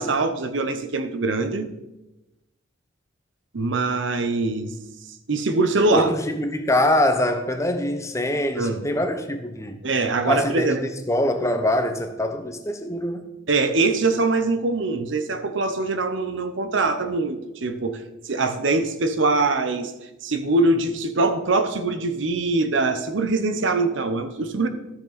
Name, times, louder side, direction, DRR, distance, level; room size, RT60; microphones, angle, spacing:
voice 1, 0.0-1.7 3.5-4.7 5.3-6.1 8.5-8.8 9.8-10.8 13.5-19.9 20.2-24.7, right 3 dB, 65° right, 0.9 m, -23 dB
voice 2, 5.9-9.8 10.3-13.3, left 1 dB, 15° left, 0.8 m, -24 dB
13.0 x 6.6 x 4.1 m
head